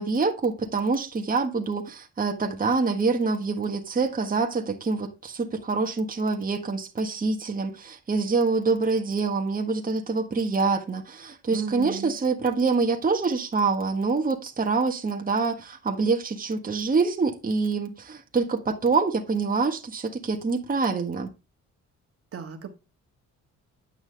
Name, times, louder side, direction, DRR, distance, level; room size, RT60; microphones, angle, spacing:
voice 1, 0.0-21.3, right 4 dB, 30° right, 1.5 m, -26 dB
voice 2, 11.5-12.1 22.3-22.7, right 7 dB, 50° right, 1.6 m, -34 dB
9.5 x 5.9 x 3.4 m
cardioid pair, 90°, 30 cm